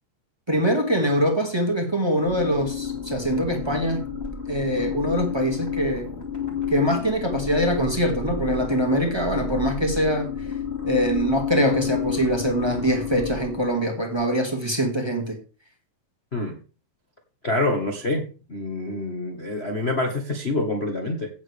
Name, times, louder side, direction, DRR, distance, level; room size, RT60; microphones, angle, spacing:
voice 1, 0.5-4.0 4.5-6.1 6.7-10.3 10.8-15.4, equal, 15° right, 1.2 m, -23 dB
sound 1, 2.2-13.9, left 6 dB, 25° left, 2.1 m, -30 dB
voice 2, 17.4-18.2 18.5-21.3, left 2 dB, 80° left, 0.5 m, -26 dB
16.5 x 7.3 x 3.4 m
omnidirectional pair, 3.7 m